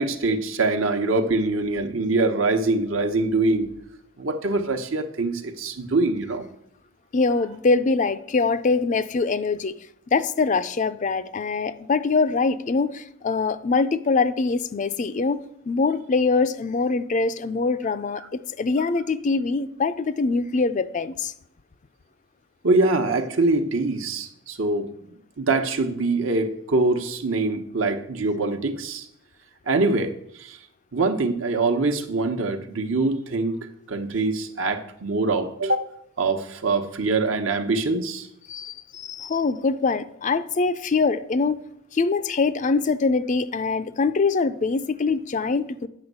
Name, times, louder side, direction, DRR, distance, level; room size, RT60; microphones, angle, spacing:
voice 1, 0.0-3.7 4.2-6.5 22.6-24.9 25.4-29.1 29.7-30.6 30.9-35.9 36.2-38.3, right 3 dB, 65° right, 1.0 m, -24 dB
voice 2, 7.1-9.8 10.1-21.3 38.5-41.6 41.9-45.9, left 4 dB, 35° left, 0.4 m, -23 dB
8.7 x 6.2 x 8.0 m
head